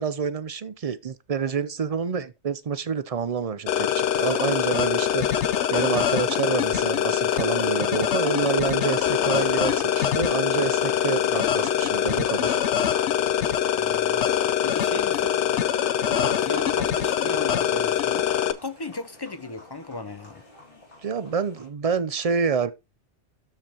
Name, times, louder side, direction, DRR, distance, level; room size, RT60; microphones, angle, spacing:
voice 1, 0.0-5.4 5.7-12.6 21.0-22.7, right 6 dB, 40° right, 0.6 m, -28 dB
sound 1, 3.7-18.5, left 9 dB, 85° left, 1.0 m, -23 dB
sound 2, 4.2-21.7, left 2 dB, 55° left, 3.9 m, -48 dB
voice 2, 13.8-14.3 14.6-15.4 16.1-20.4, left 3 dB, 25° left, 0.6 m, -35 dB
13.0 x 4.9 x 2.9 m
omnidirectional pair, 1.1 m